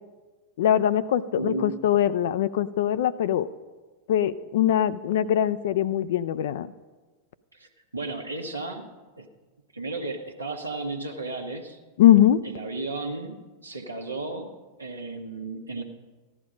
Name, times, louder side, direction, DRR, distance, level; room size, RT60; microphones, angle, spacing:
voice 1, 0.6-3.5 4.1-6.7 12.0-12.4, left 11 dB, 55° left, 14 dB, 0.4 m, -22 dB
voice 2, 1.4-1.7 7.5-8.9 9.2-9.3 9.7-11.8 12.4-14.5 14.8-15.8, right 2 dB, 80° right, 2 dB, 1.2 m, -34 dB
14.5 x 11.0 x 5.1 m, 1.3 s
figure-of-eight pair, 90°, 0 cm